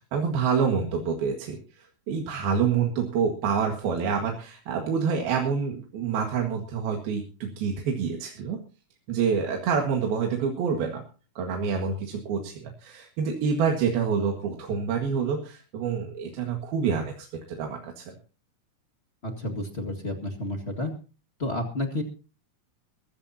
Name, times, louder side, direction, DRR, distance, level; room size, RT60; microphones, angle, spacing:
voice 1, 0.1-8.6 9.1-11.0 11.4-18.1, right 6 dB, 75° right, 2 dB, 3.6 m, -27 dB
voice 2, 19.2-20.9 21.4-22.0, left 1 dB, 35° left, 2 dB, 1.0 m, -30 dB
22.5 x 14.5 x 2.8 m, 0.36 s
omnidirectional pair, 4.5 m